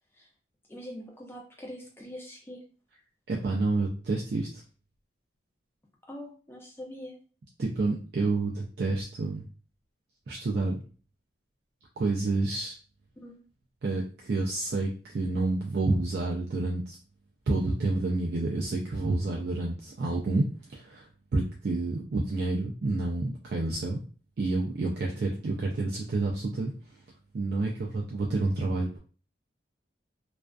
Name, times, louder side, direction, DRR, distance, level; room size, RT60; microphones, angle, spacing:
voice 1, 0.7-2.6 6.1-7.2 13.2-13.4, equal, 10° left, -1 dB, 0.5 m, -43 dB
voice 2, 3.3-4.6 7.6-9.4 10.3-10.8 12.0-12.7 13.8-17.0 17.5-24.0 24.4-27.0 27.3-29.0, right 2 dB, 55° right, -2 dB, 0.3 m, -29 dB
2.4 x 2.2 x 2.2 m, 0.38 s
head